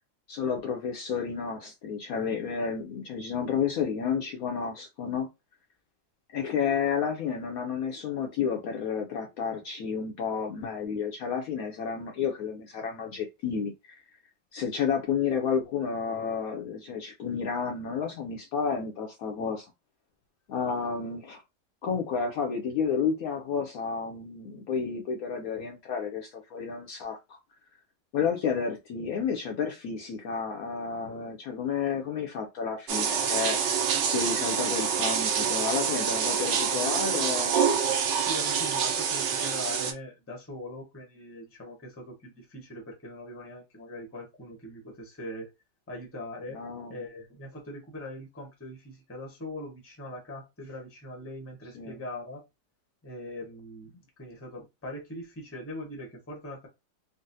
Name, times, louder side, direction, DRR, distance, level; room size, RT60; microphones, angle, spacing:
voice 1, 0.3-5.3 6.3-13.7 14.5-19.7 20.5-21.4 21.8-27.4 28.1-33.6 34.1-37.6 46.5-47.0 51.7-52.0, left 6 dB, 70° left, 0.9 m, -31 dB
sound 1, 32.9-39.9, right 7 dB, 85° right, 1.3 m, -26 dB
voice 2, 38.2-45.5 45.9-46.6 46.9-52.4 53.0-56.7, left 1 dB, 15° left, 0.5 m, -41 dB
3.9 x 2.0 x 2.6 m
omnidirectional pair, 1.9 m